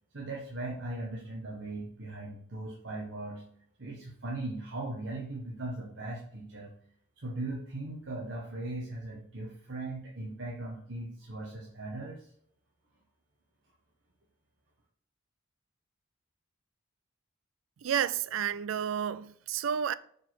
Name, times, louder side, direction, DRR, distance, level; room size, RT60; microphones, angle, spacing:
voice 1, 0.1-3.4 3.8-6.7 7.2-12.3, right 2 dB, 70° right, 1.2 m, -39 dB
voice 2, 17.8-19.9, right 8 dB, 85° right, 0.4 m, -31 dB
6.4 x 5.3 x 4.5 m
head